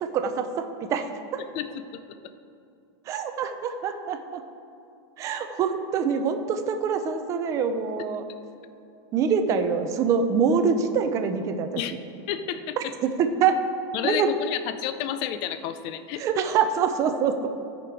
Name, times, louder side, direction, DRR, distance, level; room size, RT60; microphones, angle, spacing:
voice 1, 0.0-1.4 3.1-4.4 5.2-8.2 9.1-11.7 12.8-13.6 14.0-14.3 16.2-17.5, right 6 dB, 20° right, 7 dB, 0.5 m, -25 dB
voice 2, 1.4-2.0 11.8-12.0 12.3-12.9 13.9-16.3, left 10 dB, 30° left, 11 dB, 0.4 m, -31 dB
15.5 x 5.2 x 4.7 m, 2.5 s
supercardioid pair, 170°, 15 cm